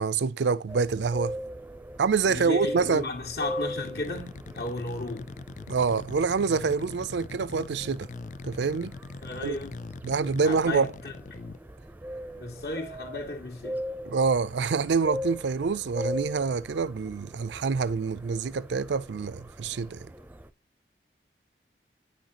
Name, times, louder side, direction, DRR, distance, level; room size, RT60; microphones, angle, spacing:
voice 1, 0.0-1.3 2.0-3.0 5.7-8.1 8.4-8.9 9.4-9.6 10.0-10.9 14.1-20.1, right 5 dB, 80° right, 0.4 m, -26 dB
sound 1, 0.7-20.5, equal, 10° right, 0.5 m, -40 dB
voice 2, 2.2-5.3 9.2-9.8 10.4-11.1 12.4-13.8, left 2 dB, 65° left, 2.0 m, -34 dB
sound 2, 3.7-11.6, left 3 dB, 45° left, 0.4 m, -42 dB
10.5 x 6.4 x 2.9 m
head